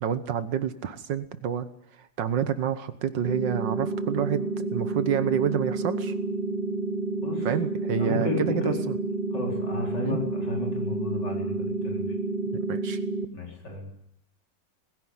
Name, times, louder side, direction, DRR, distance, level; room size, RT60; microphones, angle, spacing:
voice 1, 0.0-1.7 2.2-6.1 7.4-9.0 10.0-10.2 12.7-13.0, right 8 dB, 80° right, 11 dB, 1.8 m, -28 dB
sound 1, 3.2-13.3, right 3 dB, 30° right, 1.3 m, -30 dB
voice 2, 8.0-8.8 9.3-12.1 13.3-13.9, left 3 dB, 70° left, 0 dB, 5.0 m, -32 dB
20.5 x 16.0 x 9.6 m, 0.79 s
omnidirectional pair, 1.9 m